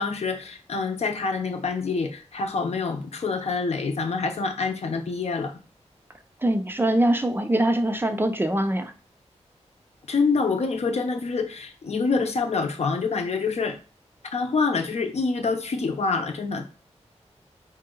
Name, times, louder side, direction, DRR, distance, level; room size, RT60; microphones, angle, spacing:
voice 1, 0.0-5.5 10.1-13.8 14.3-16.7, left 4 dB, 65° left, 5 dB, 0.7 m, -26 dB
voice 2, 6.4-8.9, right 1 dB, 20° right, 7 dB, 0.4 m, -23 dB
4.4 x 2.8 x 3.8 m, 0.35 s
wide cardioid pair, 115°, 12 cm